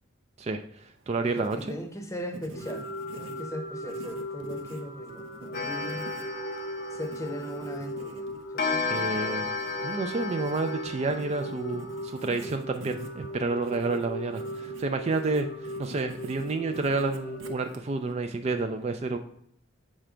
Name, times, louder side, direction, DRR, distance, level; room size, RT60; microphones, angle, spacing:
voice 1, 0.4-1.8 8.9-9.5 9.8-19.2, right 3 dB, 35° right, 6 dB, 0.3 m, -30 dB
Writing, 1.0-18.1, right 2 dB, 80° right, 0.6 m, -48 dB
voice 2, 1.3-2.9 3.1-6.1 6.9-8.3 8.5-8.8, equal, 15° left, 5 dB, 0.7 m, -38 dB
sound 1, 2.5-17.6, right 1 dB, 90° left, 0.8 m, -39 dB
Clock, 5.5-7.8 8.6-12.0, left 4 dB, 50° left, 0.7 m, -33 dB
7.3 x 3.3 x 4.9 m, 0.69 s
head